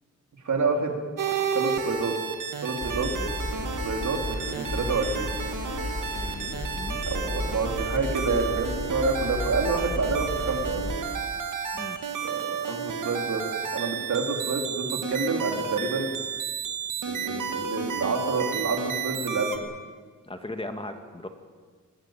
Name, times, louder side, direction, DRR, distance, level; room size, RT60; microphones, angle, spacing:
voice 1, 0.4-1.0 1.5-2.2 2.6-3.1 3.8-5.4 7.0-10.8 12.2-13.4 13.7-16.1 17.1-19.6, right 4 dB, 70° right, 2 dB, 3.7 m, -28 dB
sound 1, 1.2-19.6, right 6 dB, 85° right, 2.3 m, -32 dB
sound 2, 2.8-11.1, left 2 dB, 40° left, 3.1 m, -33 dB
voice 2, 20.2-21.3, left 1 dB, 20° left, 6 dB, 1.7 m, -37 dB
19.5 x 19.5 x 9.0 m, 1.5 s
wide cardioid pair, 155°, 31 cm